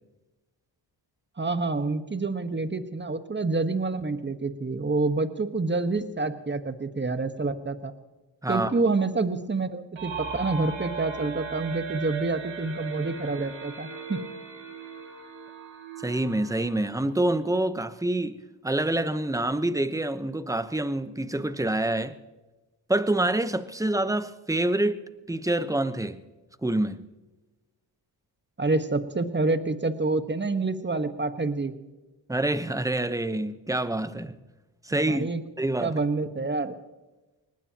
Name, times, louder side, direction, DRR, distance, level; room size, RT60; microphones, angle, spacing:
voice 1, 1.4-7.9 8.5-14.2 28.6-31.7 35.1-35.4 35.8-36.8, right 3 dB, 25° right, 1.3 m, -27 dB
sound 1, 10.0-17.6, right 5 dB, 70° right, 2.5 m, -38 dB
voice 2, 16.0-22.1 22.9-26.2 26.6-27.0 32.3-34.4 34.8-35.3 35.6-35.9, right 1 dB, 5° right, 0.9 m, -27 dB
23.0 x 19.0 x 2.9 m
supercardioid pair, 50°, 47 cm